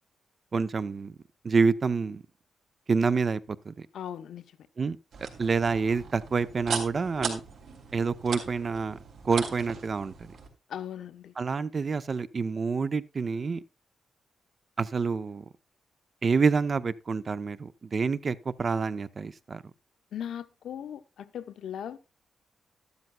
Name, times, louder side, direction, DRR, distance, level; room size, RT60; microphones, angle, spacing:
voice 1, 0.5-1.1 1.4-2.2 2.9-3.4 3.7-3.9 4.8-5.0 5.4-7.4 7.9-9.0 9.2-10.1 11.4-13.6 14.8-15.4 16.2-19.6, right 5 dB, 30° right, 0.5 m, -27 dB
voice 2, 3.9-4.4 10.7-11.3 20.1-22.0, left 9 dB, 75° left, 0.9 m, -38 dB
sound 1, 5.1-10.5, right 5 dB, 70° right, 3.4 m, -38 dB
13.5 x 12.0 x 2.2 m
wide cardioid pair, 160°, 0 cm